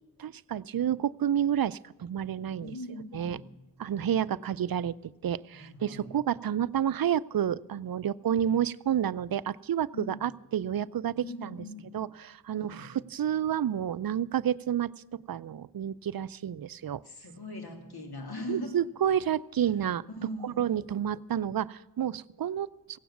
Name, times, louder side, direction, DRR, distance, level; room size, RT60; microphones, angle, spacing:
voice 1, 0.2-2.7 3.1-3.4 3.8-11.6 11.9-17.0 18.5-20.0 20.4-22.7, right 9 dB, 60° right, 18 dB, 0.5 m, -30 dB
voice 2, 2.6-3.5 3.8-4.1 5.5-6.1 9.9-10.2 11.2-11.9 12.5-12.9 17.0-18.7 20.1-20.7, left 1 dB, 65° left, 3 dB, 3.0 m, -41 dB
16.5 x 9.3 x 7.1 m, 1.1 s
cardioid pair, 50°, 41 cm